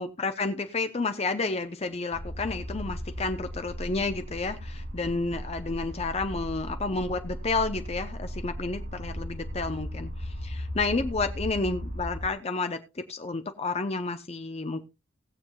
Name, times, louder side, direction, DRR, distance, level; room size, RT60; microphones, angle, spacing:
voice 1, 0.0-14.8, left 3 dB, 30° left, 0.6 m, -31 dB
sound 1, 2.1-12.3, equal, 75° right, 3.0 m, -37 dB
19.0 x 7.3 x 2.3 m
head